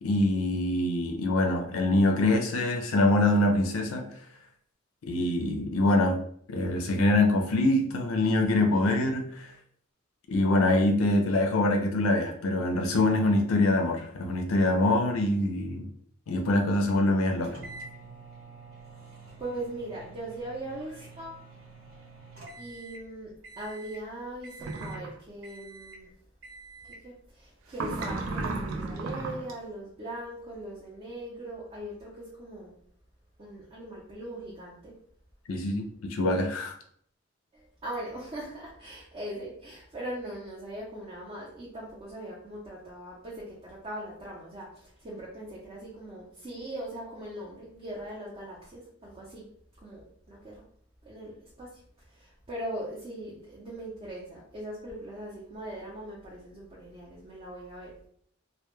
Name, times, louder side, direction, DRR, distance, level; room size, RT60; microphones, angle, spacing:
voice 1, 0.0-4.1 5.1-6.2 6.5-9.5 10.3-15.9 16.3-17.6 35.5-36.7, left 2 dB, 80° left, 4 dB, 0.4 m, -24 dB
sound 1, 17.4-23.1 23.4-24.0 24.4-25.1 25.4-26.0 26.4-27.1, right 3 dB, 70° right, 1.0 m, -48 dB
voice 2, 19.4-21.4 22.6-26.1 26.8-32.8 33.4-34.9 37.5-49.5 49.8-50.6 51.0-51.8 52.1-58.1, right 1 dB, 30° right, -5 dB, 0.5 m, -40 dB
sound 2, 24.6-25.1 27.7-29.5, right 3 dB, 85° right, 0.4 m, -33 dB
2.1 x 2.1 x 3.0 m, 0.64 s
head